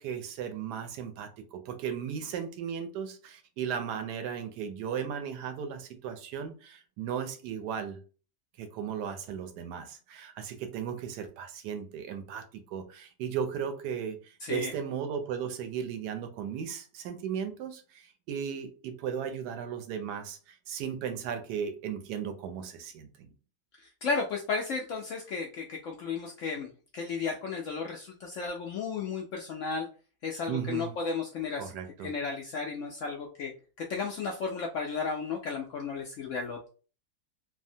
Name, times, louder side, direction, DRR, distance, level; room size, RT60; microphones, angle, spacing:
voice 1, 0.0-8.0 8.6-23.3 30.5-30.9 31.6-32.1, right 7 dB, 75° right, 1.1 m, -36 dB
voice 2, 14.4-14.7 23.8-29.9 30.2-31.7 32.0-33.5 33.8-36.7, left 5 dB, 70° left, 0.7 m, -34 dB
3.3 x 2.0 x 2.6 m
omnidirectional pair, 1.8 m